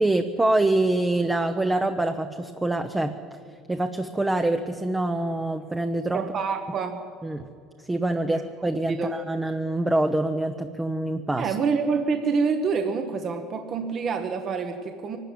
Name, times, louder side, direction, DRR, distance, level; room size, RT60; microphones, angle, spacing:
voice 1, 0.0-3.2 3.7-6.2 7.2-7.5 7.9-11.5, right 2 dB, 10° right, 6 dB, 0.8 m, -25 dB
voice 2, 6.1-7.1 8.2-8.4 8.9-9.1 11.4-15.2, right 5 dB, 35° right, 6 dB, 1.2 m, -27 dB
23.5 x 13.0 x 9.5 m, 2.3 s
cardioid pair, 135°, 0 cm